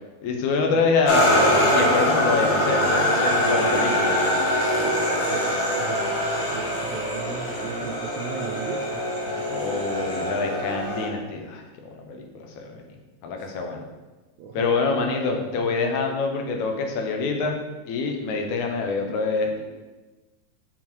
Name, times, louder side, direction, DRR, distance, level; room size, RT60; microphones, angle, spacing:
voice 1, 0.2-4.1 9.6-11.6 12.1-12.8 13.2-13.9 14.5-17.6 17.9-19.7, left 4 dB, 80° left, 3 dB, 2.2 m, -25 dB
sound 1, 1.0-11.1, equal, 60° left, 1.0 m, -23 dB
voice 2, 4.8-6.1 6.5-9.9 13.4-13.5 14.4-15.1 15.3-15.8, right 6 dB, 80° right, 0 dB, 1.8 m, -37 dB
8.6 x 3.9 x 3.1 m, 1.2 s
omnidirectional pair, 3.4 m